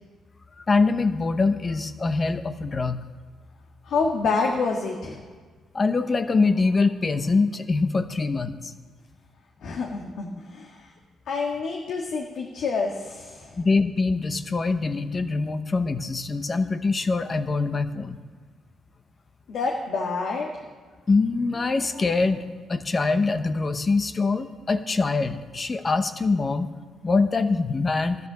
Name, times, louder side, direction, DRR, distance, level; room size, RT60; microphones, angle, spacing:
voice 1, 0.6-3.0 5.7-8.7 13.6-18.2 21.1-26.7 27.0-28.2, left 3 dB, 30° left, 10 dB, 0.9 m, -24 dB
voice 2, 3.9-5.2 9.6-10.7 11.3-13.5 19.5-20.5, left 4 dB, 70° left, 0 dB, 1.6 m, -27 dB
13.5 x 9.5 x 6.7 m, 1.5 s
cardioid pair, 90°, 0 cm